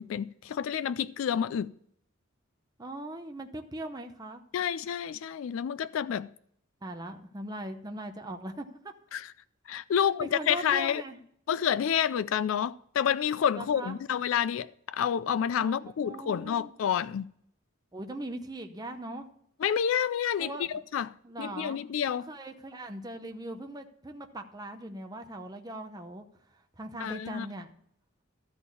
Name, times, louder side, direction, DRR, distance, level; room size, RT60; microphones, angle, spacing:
voice 1, 0.0-1.7 4.5-6.3 9.1-9.3 9.7-11.0 11.5-17.3 19.6-20.5 20.9-22.3 27.0-27.5, left 8 dB, 70° left, 0.3 m, -29 dB
voice 2, 2.8-4.4 6.8-8.9 9.9-11.2 13.5-14.0 15.6-16.7 17.9-19.3 20.4-20.7 21.2-21.8 22.3-26.2 26.5-27.7, right 1 dB, 20° right, 0.7 m, -40 dB
13.0 x 4.3 x 8.3 m
head